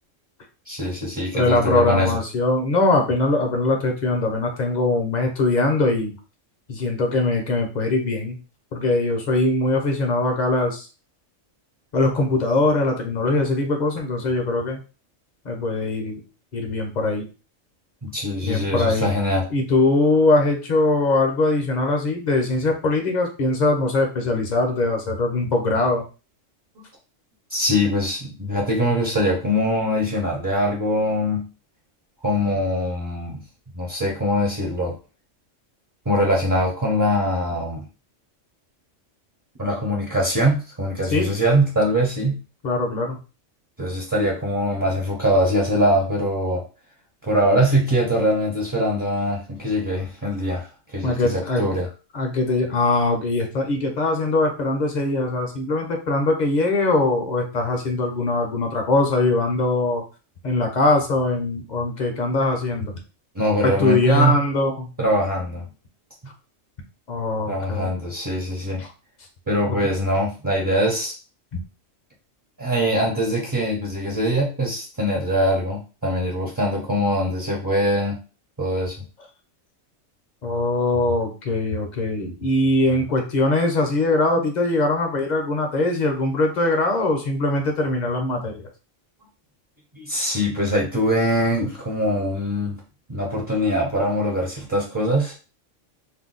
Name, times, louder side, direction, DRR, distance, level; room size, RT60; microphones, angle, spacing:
voice 1, 0.7-2.2 18.0-19.4 27.5-31.5 32.2-33.4 33.7-34.9 36.1-37.8 39.6-42.4 43.8-46.6 47.2-50.7 50.9-51.9 63.3-64.4 65.0-65.6 67.5-68.8 69.5-71.1 72.6-78.2 78.6-78.9 89.9-92.8 93.1-95.3, equal, 25° right, -2 dB, 0.5 m, -22 dB
voice 2, 1.3-6.1 6.7-8.4 8.7-10.9 11.9-14.8 15.4-16.2 16.5-17.3 18.4-19.1 19.5-26.0 41.1-41.3 42.6-43.2 51.0-51.6 52.1-60.0 60.4-62.9 63.6-64.9 67.1-67.9 68.8-68.9 69.7-69.9 71.5-71.6 80.4-88.6, left 2 dB, 50° left, 3 dB, 0.6 m, -21 dB
2.6 x 2.2 x 3.7 m, 0.33 s
omnidirectional pair, 1.3 m